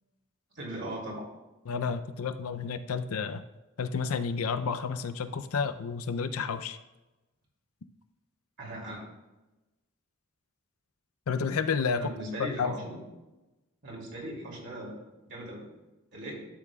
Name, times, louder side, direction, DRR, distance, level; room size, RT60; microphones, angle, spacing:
voice 1, 0.5-1.3 8.6-9.0 12.0-13.0 13.8-15.6 16.1-16.5, right 1 dB, 55° right, -3 dB, 2.5 m, -39 dB
voice 2, 1.7-3.4 3.8-6.8 11.3-12.1 12.4-12.7, left 5 dB, 85° left, 11 dB, 0.5 m, -30 dB
12.0 x 6.9 x 2.3 m, 1.1 s
head